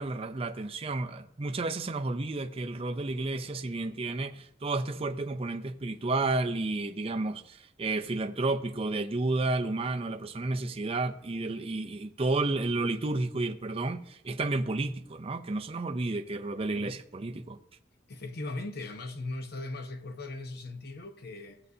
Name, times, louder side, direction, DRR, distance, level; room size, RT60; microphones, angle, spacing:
voice 1, 0.0-17.6, right 2 dB, 30° right, 0.5 m, -31 dB
voice 2, 18.1-21.6, left 2 dB, 55° left, 0.9 m, -38 dB
17.0 x 7.9 x 2.8 m
head